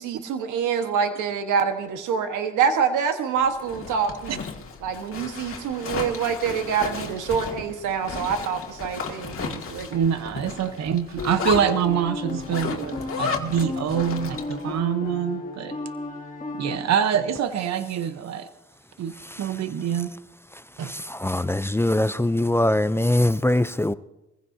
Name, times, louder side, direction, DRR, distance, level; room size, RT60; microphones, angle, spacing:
voice 1, 0.0-4.4 4.8-10.0, right 6 dB, 85° right, 1.4 m, -26 dB
Zipper (clothing), 3.5-14.7, left 5 dB, 45° left, 2.1 m, -34 dB
voice 2, 9.9-15.8 16.5-18.5 19.0-20.1 20.8-20.9, right 8 dB, 60° right, 0.9 m, -25 dB
sound 1, 11.2-16.8, left 3 dB, 30° left, 2.3 m, -34 dB
voice 3, 21.1-23.9, left 1 dB, 10° left, 0.4 m, -22 dB
23.0 x 15.5 x 2.7 m
cardioid pair, 90°, 30 cm